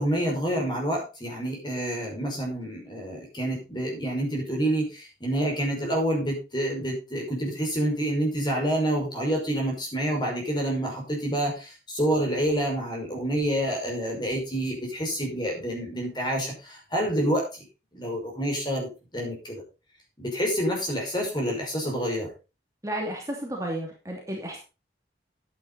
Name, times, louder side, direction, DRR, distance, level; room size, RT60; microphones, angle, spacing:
voice 1, 0.0-17.6 17.9-18.9 19.1-19.6 20.2-22.3, right 1 dB, 25° left, 0 dB, 5.5 m, -28 dB
voice 2, 22.8-24.6, right 1 dB, 20° right, -1 dB, 2.8 m, -32 dB
10.5 x 9.5 x 4.1 m, 0.30 s
head